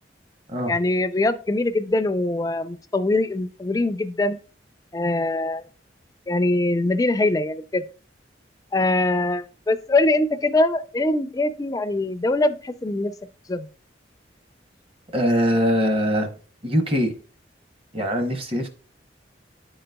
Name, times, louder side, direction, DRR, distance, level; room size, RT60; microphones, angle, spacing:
voice 1, 0.7-4.4 4.9-5.6 6.3-7.8 8.7-13.1 13.5-13.7, left 2 dB, 20° left, 11 dB, 0.3 m, -22 dB
voice 2, 15.1-16.3 16.6-17.1 17.9-18.7, equal, 30° right, 5 dB, 0.8 m, -22 dB
11.0 x 3.9 x 2.2 m, 0.38 s
head